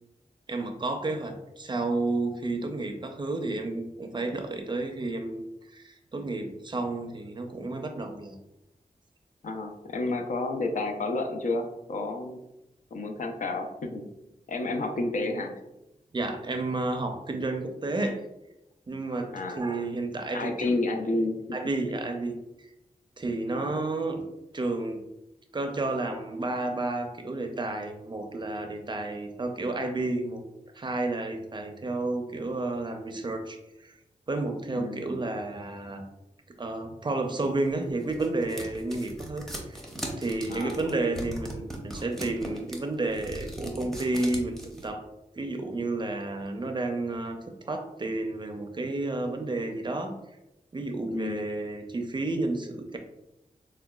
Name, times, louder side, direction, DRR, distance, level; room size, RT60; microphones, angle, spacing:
voice 1, 0.5-5.5 5.7-8.4 16.1-18.2 18.9-20.8 21.5-22.7 23.2-24.2 24.5-25.0 25.5-30.4 30.7-33.9 34.3-36.0 36.6-39.8 40.2-45.0 45.3-47.4 47.7-50.1 50.7-53.0, right 2 dB, 35° right, 4 dB, 0.4 m, -31 dB
voice 2, 9.4-12.4 12.9-14.1 14.5-15.5 19.3-19.6 20.3-21.4 23.5-23.8 34.8-35.1 40.5-40.8 51.1-51.4, left 2 dB, 65° left, 4 dB, 0.5 m, -30 dB
sound 1, 37.6-44.9, right 1 dB, 5° left, 0.7 m, -39 dB
4.6 x 2.2 x 2.3 m, 0.90 s
wide cardioid pair, 80°, 14 cm